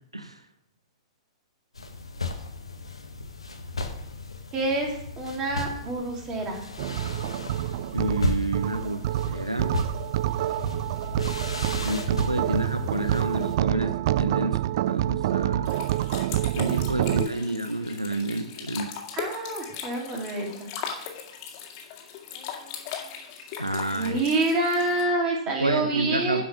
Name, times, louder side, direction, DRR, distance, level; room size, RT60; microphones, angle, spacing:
sound 1, 1.8-13.6, left 2 dB, 80° left, 1.2 m, -35 dB
voice 1, 4.5-6.6 16.9-17.6 19.2-20.7 23.9-26.4, right 2 dB, 25° right, 0 dB, 2.9 m, -27 dB
sound 2, 6.8-17.3, right 14 dB, 50° right, 0.4 m, -27 dB
voice 2, 7.9-9.8 11.8-14.6 14.9-15.7 16.6-18.9 23.6-24.2 25.6-26.4, right 1 dB, 85° right, 9 dB, 0.7 m, -29 dB
sound 3, 15.7-25.0, left 7 dB, 40° left, 2.2 m, -38 dB
11.0 x 5.6 x 6.1 m, 0.72 s
figure-of-eight pair, 105°, 3 cm